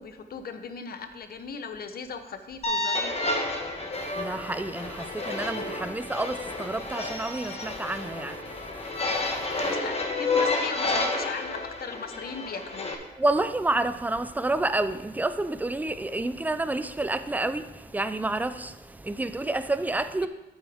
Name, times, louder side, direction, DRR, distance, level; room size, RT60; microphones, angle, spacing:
voice 1, 0.0-3.2 9.6-13.1, left 5 dB, 50° left, 0.9 m, -38 dB
sound 1, 2.6-12.9, left 2 dB, 30° left, 1.4 m, -30 dB
voice 2, 3.9-9.7 13.2-20.3, right 2 dB, 10° right, 0.5 m, -29 dB
9.6 x 8.1 x 3.5 m
cardioid pair, 90°, 20 cm